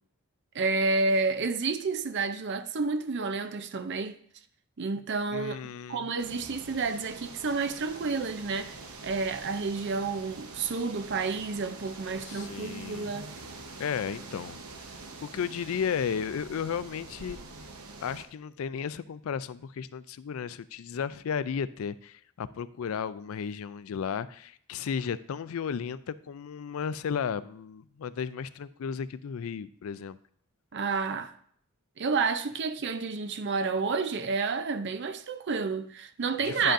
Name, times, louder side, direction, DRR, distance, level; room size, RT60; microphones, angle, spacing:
voice 1, 0.5-4.2 4.8-5.6 5.9-8.7 9.0-13.3 30.7-31.3 32.0-36.7, right 4 dB, 50° right, 0.5 m, -30 dB
voice 2, 5.3-6.1 12.3-13.1 13.8-14.6 14.9-17.4 18.0-30.2 36.4-36.7, left 7 dB, 70° left, 0.4 m, -34 dB
sound 1, 6.2-18.3, right 3 dB, 75° right, 1.0 m, -45 dB
10.0 x 7.7 x 2.6 m
head